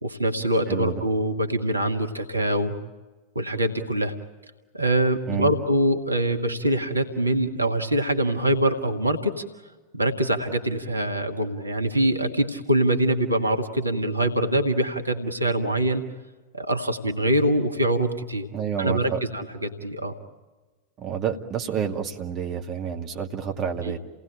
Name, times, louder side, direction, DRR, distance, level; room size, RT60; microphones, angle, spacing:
voice 1, 0.0-2.7 3.3-4.1 4.7-9.4 9.9-16.0 16.5-18.5 18.8-20.1 23.8-23.9, right 1 dB, 80° right, 6 dB, 1.6 m, -24 dB
voice 2, 0.7-1.0 5.3-5.5 18.5-19.2 21.0-24.0, right 8 dB, 30° right, 3 dB, 2.4 m, -29 dB
29.5 x 18.5 x 8.8 m, 1.3 s
figure-of-eight pair, 90°, 0 cm